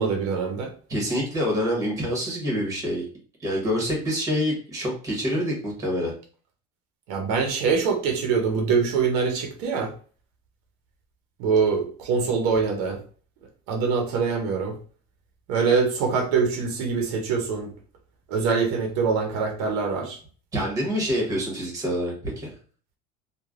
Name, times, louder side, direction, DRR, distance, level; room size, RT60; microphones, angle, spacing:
voice 1, 0.0-0.7 7.1-9.9 11.4-13.0 13.7-14.7 15.5-17.7 18.3-20.2, right 5 dB, 75° right, 4 dB, 0.7 m, -24 dB
voice 2, 0.9-3.0 3.4-6.1 20.5-22.5, equal, 15° right, -1 dB, 1.0 m, -26 dB
3.1 x 2.1 x 2.4 m, 0.42 s
cardioid pair, 155°, 20 cm